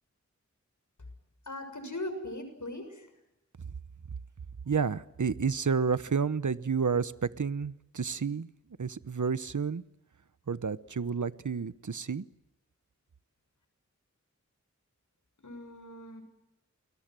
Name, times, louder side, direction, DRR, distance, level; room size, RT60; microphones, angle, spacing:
voice 1, 1.5-3.1 15.4-16.2, left 1 dB, 75° left, 7 dB, 6.9 m, -39 dB
voice 2, 4.6-8.5 8.8-9.8 10.5-12.2, right 5 dB, 75° right, 15 dB, 1.0 m, -30 dB
29.0 x 22.0 x 7.7 m, 0.89 s
wide cardioid pair, 60°, 30 cm